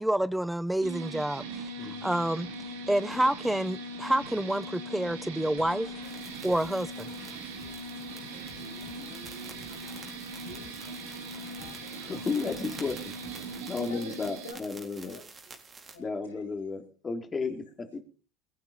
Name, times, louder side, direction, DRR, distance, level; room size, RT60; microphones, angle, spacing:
voice 1, 0.0-2.5 2.9-6.0 6.4-7.1, right 1 dB, 5° right, 0.6 m, -28 dB
sound 1, 0.8-14.5, right 2 dB, 80° right, 3.1 m, -40 dB
sound 2, 5.6-13.6, left 8 dB, 70° left, 2.4 m, -53 dB
sound 3, 6.0-16.0, right 4 dB, 30° right, 4.0 m, -50 dB
voice 2, 8.5-9.9 10.4-10.9 13.7-14.6 15.0-15.6 15.9-16.4, left 2 dB, 90° left, 5.5 m, -47 dB
voice 3, 11.9-13.1 13.6-15.2 16.0-18.0, left 4 dB, 25° left, 3.4 m, -33 dB
22.0 x 9.3 x 5.5 m
hypercardioid pair, 75°, 0 cm